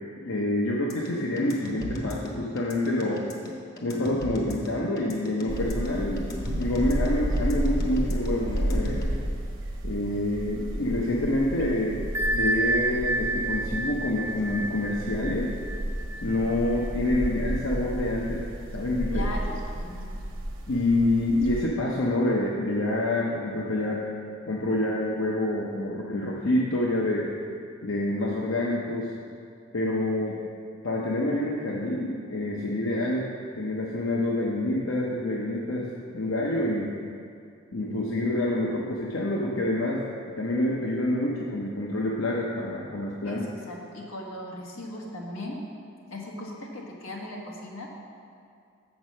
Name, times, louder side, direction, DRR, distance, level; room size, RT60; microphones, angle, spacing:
voice 1, 0.2-3.2 3.8-6.3 6.6-9.2 9.8-15.5 16.2-18.4 18.7-19.2 20.7-24.0 24.5-27.3 27.8-29.1 29.7-30.4 30.8-33.3 33.6-35.9 36.1-36.9 37.7-40.0 40.4-43.4, left 1 dB, 70° left, -3 dB, 0.8 m, -27 dB
sound 1, 0.9-9.1, equal, 50° left, 1.2 m, -37 dB
sound 2, 5.5-21.6, right 1 dB, 70° right, 0.9 m, -32 dB
Bell, 12.1-17.6, right 1 dB, 15° right, 0.6 m, -30 dB
voice 2, 19.1-20.1 43.2-45.6 46.1-47.9, left 1 dB, 90° left, -2 dB, 1.5 m, -38 dB
7.2 x 6.2 x 6.3 m, 2.3 s
head